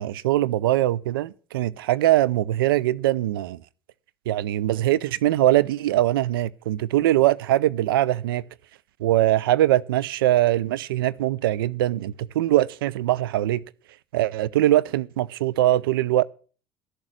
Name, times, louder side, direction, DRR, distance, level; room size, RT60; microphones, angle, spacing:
voice 1, 0.0-3.6 4.3-8.4 9.0-13.6 14.1-16.2, right 14 dB, 80° right, 0.4 m, -22 dB
13.0 x 7.2 x 6.4 m
hypercardioid pair, 65°, 12 cm